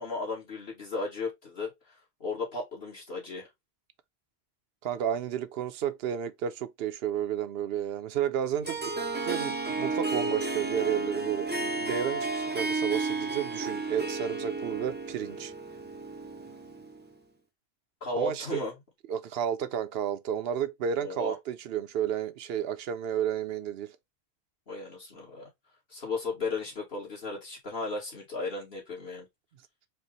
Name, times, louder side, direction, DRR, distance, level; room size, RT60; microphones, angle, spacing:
voice 1, 0.0-3.5 18.0-18.7 21.0-21.3 24.7-25.5 25.9-29.3, left 3 dB, 65° left, 1.9 m, -35 dB
voice 2, 4.8-8.9 9.2-15.5 18.2-18.6 19.1-24.0, right 9 dB, 70° right, 0.8 m, -32 dB
Harp, 8.6-17.1, right 3 dB, 15° right, 0.5 m, -32 dB
4.5 x 2.1 x 3.9 m
omnidirectional pair, 1.1 m